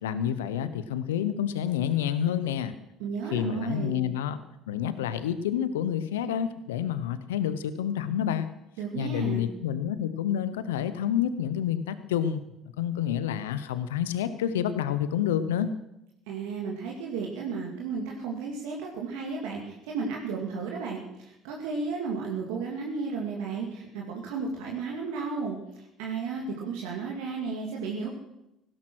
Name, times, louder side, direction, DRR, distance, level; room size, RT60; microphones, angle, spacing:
voice 1, 0.0-2.8 3.3-4.4 4.7-8.5 8.9-12.4 12.8-15.7, left 9 dB, 85° left, 13 dB, 0.8 m, -28 dB
voice 2, 3.0-4.0 8.8-9.5 16.3-25.6 26.0-28.1, right 5 dB, 80° right, -1 dB, 2.4 m, -33 dB
16.5 x 12.5 x 6.2 m, 0.88 s
hypercardioid pair, 65°, 0 cm